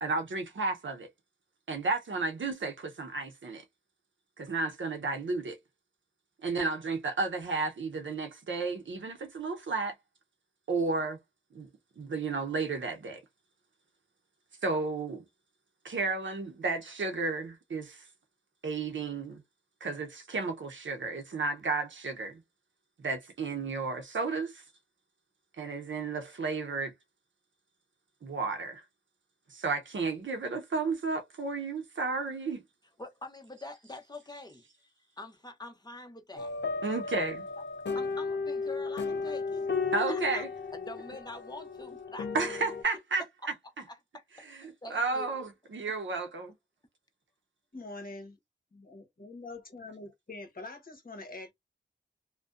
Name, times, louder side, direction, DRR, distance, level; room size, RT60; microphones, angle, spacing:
voice 1, 0.0-1.1 1.7-3.6 4.4-5.6 6.4-10.0 10.7-11.2 11.5-11.7 12.0-13.2 14.6-15.2 15.8-18.0 18.6-19.4 19.8-22.4 23.0-24.6 25.6-26.9 28.2-28.8 29.5-32.6 36.8-37.4 39.9-40.5 42.3-43.2 44.5-46.5, right 3 dB, 75° right, 0.7 m, -32 dB
voice 2, 33.0-34.9 35.2-36.5 37.9-39.7 40.1-40.4 40.7-42.3 43.9-44.2 44.8-45.4, left 2 dB, 20° left, 0.8 m, -45 dB
sound 1, 36.4-42.8, left 4 dB, 65° left, 0.5 m, -34 dB
voice 3, 47.7-48.3 48.9-51.5, left 2 dB, 50° left, 1.0 m, -44 dB
2.6 x 2.1 x 2.4 m
wide cardioid pair, 65°, 20 cm